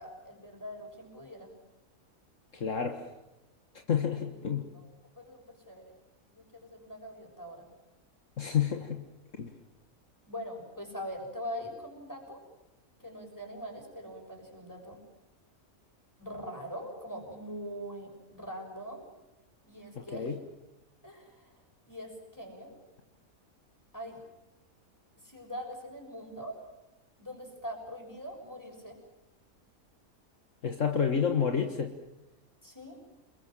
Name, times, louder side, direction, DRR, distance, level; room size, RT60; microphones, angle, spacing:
voice 1, 0.0-1.5 4.2-4.4 4.7-4.9 5.2-6.0 6.3-7.6 10.3-12.4 13.0-15.0 16.2-19.1 19.6-20.3 21.0-21.5 21.9-22.8 23.9-24.2 25.2-26.6 27.2-29.0 32.6-33.0, equal, 10° left, 1 dB, 6.5 m, -42 dB
voice 2, 2.5-3.0 3.9-4.7 8.4-9.0 9.4-9.5 20.0-20.4 30.6-31.9, left 7 dB, 60° left, 5 dB, 1.9 m, -29 dB
28.0 x 22.0 x 7.6 m, 0.96 s
omnidirectional pair, 1.5 m